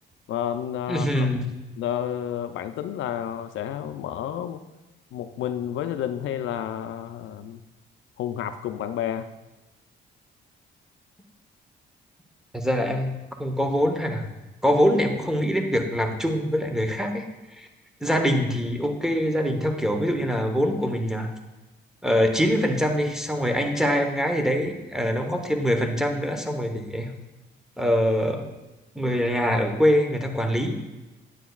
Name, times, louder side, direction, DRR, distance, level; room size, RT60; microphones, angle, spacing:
voice 1, 0.3-1.3 1.8-4.6 5.1-7.6 8.2-9.3, left 10 dB, 75° left, 9 dB, 0.5 m, -30 dB
voice 2, 0.9-1.4 12.5-14.2 14.6-17.3 17.6-17.7 18.0-21.3 22.0-27.1 27.8-28.4 28.9-30.8, equal, 5° right, 4 dB, 1.1 m, -24 dB
9.2 x 9.0 x 2.4 m, 1.1 s
cardioid pair, 90°, 20 cm